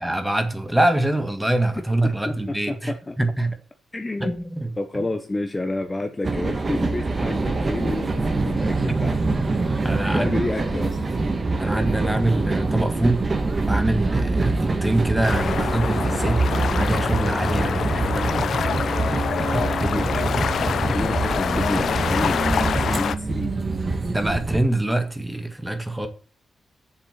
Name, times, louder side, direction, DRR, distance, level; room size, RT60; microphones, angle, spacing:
voice 1, 0.0-3.6 4.2-4.7 8.9-9.2 9.8-10.6 11.6-13.3 13.7-16.4 16.7-18.5 24.1-26.1, right 1 dB, 5° right, 1.6 m, -24 dB
voice 2, 2.0-3.2 3.9-4.3 4.8-9.1 10.1-11.0 19.6-23.6, left 2 dB, 20° left, 1.1 m, -29 dB
sound 1, 6.2-24.6, right 3 dB, 35° right, 1.7 m, -24 dB
sound 2, 15.2-23.2, left 7 dB, 70° left, 0.7 m, -26 dB
8.0 x 7.1 x 7.5 m
wide cardioid pair, 120°, 0 cm